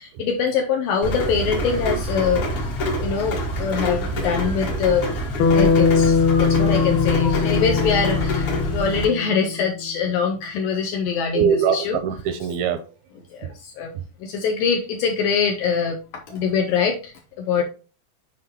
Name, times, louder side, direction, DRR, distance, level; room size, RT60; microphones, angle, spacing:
voice 1, 0.0-2.5 3.0-5.1 5.5-12.0 13.3-13.9 14.2-17.6, left 6 dB, 85° left, 2.0 m, -24 dB
Rain, 1.0-9.0, left 1 dB, 55° left, 1.6 m, -26 dB
Bass guitar, 5.4-9.8, left 5 dB, 70° left, 2.4 m, -21 dB
voice 2, 11.3-12.8, right 7 dB, 85° right, 2.2 m, -22 dB
7.6 x 5.1 x 2.9 m
omnidirectional pair, 4.7 m